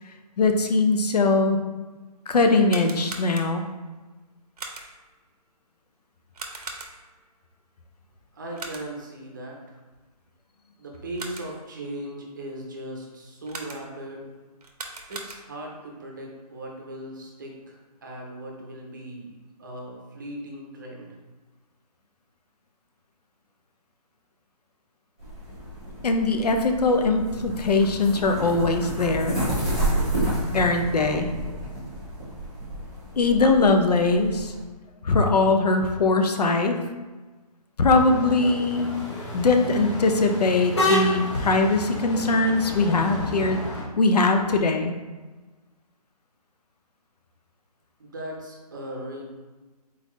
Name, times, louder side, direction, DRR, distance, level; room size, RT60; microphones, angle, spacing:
voice 1, 0.4-1.6 2.3-3.7 26.0-29.4 30.5-31.3 33.2-34.5 35.0-36.8 37.8-38.9 39.3-43.6 44.0-44.9, left 3 dB, 75° left, 4 dB, 0.7 m, -21 dB
sound 1, 2.5-3.8 4.6-5.1 6.3-7.2 8.6-9.1 10.9-11.7 13.5-14.1 14.6-15.7, right 3 dB, 70° right, 0.8 m, -40 dB
voice 2, 8.3-9.8 10.8-14.3 15.1-21.1 48.0-49.2, right 1 dB, 30° right, 0 dB, 0.7 m, -38 dB
sound 2, 25.2-34.6, right 1 dB, 5° left, 0.4 m, -30 dB
sound 3, 37.9-43.8, left 1 dB, 45° left, 1.3 m, -30 dB
4.3 x 3.8 x 3.0 m, 1.2 s
hypercardioid pair, 170°, 21 cm